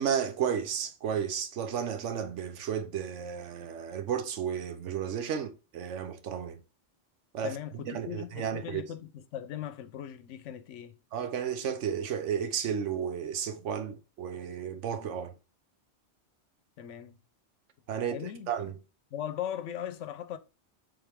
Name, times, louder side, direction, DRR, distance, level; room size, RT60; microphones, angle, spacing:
voice 1, 0.0-6.6 7.3-7.5 7.9-8.8 11.1-15.3 17.9-18.2 18.5-18.7, right 8 dB, 80° right, 1.1 m, -33 dB
voice 2, 7.4-11.0 16.8-17.2 18.0-18.7 19.1-20.4, left 10 dB, 90° left, 1.0 m, -39 dB
7.1 x 3.9 x 3.4 m
omnidirectional pair, 1.2 m